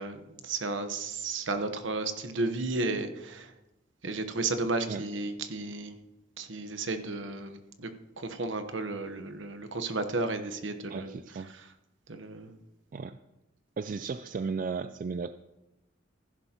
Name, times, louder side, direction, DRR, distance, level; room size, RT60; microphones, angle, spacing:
voice 1, 0.0-3.5 4.0-6.0 6.4-7.9 8.2-11.2 12.1-12.6, right 3 dB, 70° right, 8 dB, 1.0 m, -33 dB
voice 2, 10.9-11.5 12.9-13.2 13.8-15.3, right 5 dB, 40° right, 11 dB, 0.3 m, -35 dB
15.0 x 11.0 x 2.9 m, 0.95 s
head